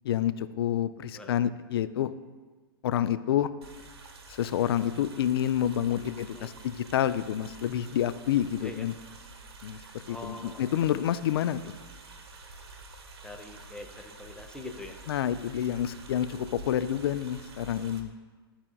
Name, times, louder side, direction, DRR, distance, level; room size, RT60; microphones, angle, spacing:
voice 1, 0.0-2.1 2.8-3.5 4.3-8.9 9.6-11.7 15.1-18.1, left 10 dB, 70° left, 13 dB, 0.4 m, -28 dB
sound 1, 3.6-18.0, right 3 dB, 75° right, 1.0 m, -48 dB
voice 2, 10.1-11.1 13.2-15.0, left 2 dB, 5° left, 3 dB, 0.7 m, -43 dB
13.0 x 4.4 x 2.3 m, 1.4 s
hypercardioid pair, 115°, 13 cm